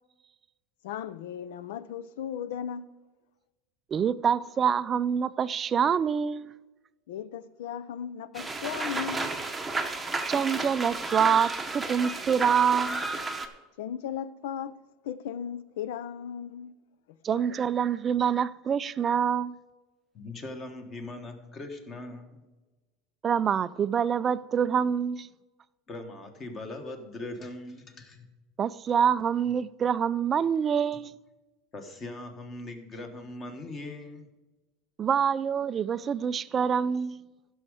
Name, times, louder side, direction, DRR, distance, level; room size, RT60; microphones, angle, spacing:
voice 1, 0.8-2.9 7.1-9.2 13.8-14.8 15.0-16.8 17.1-17.4, left 9 dB, 85° left, 0.6 m, -36 dB
voice 2, 3.9-6.5 10.3-13.1 17.2-19.5 23.2-25.3 28.6-31.1 35.0-37.2, right 7 dB, 20° right, 0.3 m, -26 dB
sound 1, 8.3-13.5, right 3 dB, 5° right, 0.8 m, -32 dB
voice 3, 20.1-22.4 25.9-28.3 31.7-34.3, left 2 dB, 25° left, 1.3 m, -40 dB
15.0 x 6.3 x 4.9 m
supercardioid pair, 165°, 0 cm